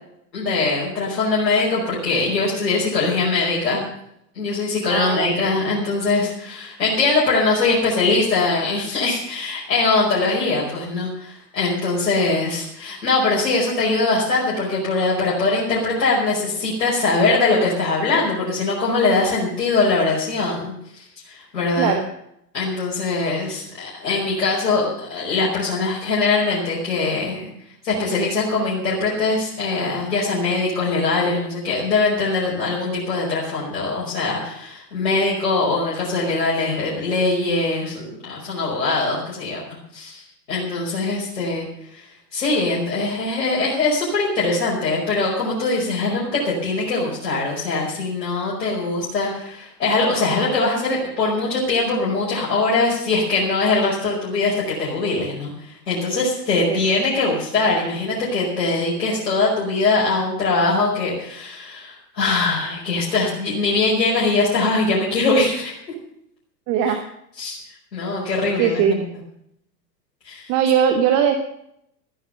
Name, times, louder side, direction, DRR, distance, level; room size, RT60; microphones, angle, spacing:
voice 1, 0.3-3.8 4.4-22.0 22.5-27.5 27.8-40.2 40.5-41.6 41.9-55.5 55.9-65.7 66.9-67.0 67.4-67.6 67.9-69.0 70.2-70.5, left 3 dB, 65° left, -7 dB, 5.4 m, -22 dB
voice 2, 4.9-5.4 21.8-22.1 56.7-56.8 66.7-67.1 68.6-69.1 70.5-71.4, right 8 dB, 35° right, 7 dB, 1.3 m, -20 dB
14.0 x 11.0 x 6.5 m, 0.74 s
figure-of-eight pair, 95°, 49 cm